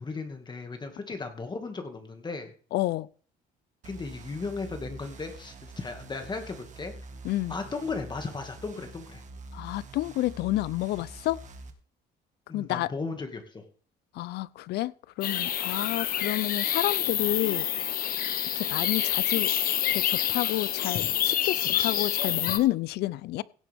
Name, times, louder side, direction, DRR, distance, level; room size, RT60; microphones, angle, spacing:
voice 1, 0.0-2.5 3.8-6.9 7.5-9.2 12.5-13.7, left 4 dB, 25° left, 2.1 m, -36 dB
voice 2, 2.7-3.1 7.2-7.6 9.5-11.4 12.5-12.9 14.1-17.7 18.6-19.5 19.9-23.4, left 16 dB, 75° left, 0.6 m, -30 dB
sound 1, 3.8-11.7, right 2 dB, 45° right, 1.9 m, -46 dB
sound 2, 15.2-22.6, left 10 dB, 60° left, 1.1 m, -27 dB
16.5 x 8.3 x 3.6 m
cardioid pair, 110°, 17 cm